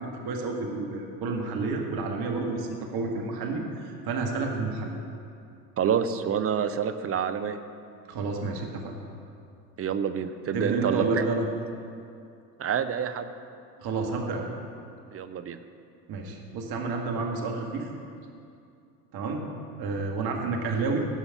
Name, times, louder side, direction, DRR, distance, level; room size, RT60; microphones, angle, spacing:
voice 1, 0.0-5.0 8.1-8.9 10.5-11.5 13.8-14.5 16.1-17.9 19.1-19.5 19.8-21.1, right 3 dB, 50° right, 1 dB, 1.9 m, -30 dB
voice 2, 5.8-7.6 9.8-11.3 12.6-13.3 15.1-15.6, right 7 dB, 30° right, 9 dB, 0.7 m, -28 dB
16.5 x 5.7 x 5.8 m, 2.5 s
hypercardioid pair, 80°, 48 cm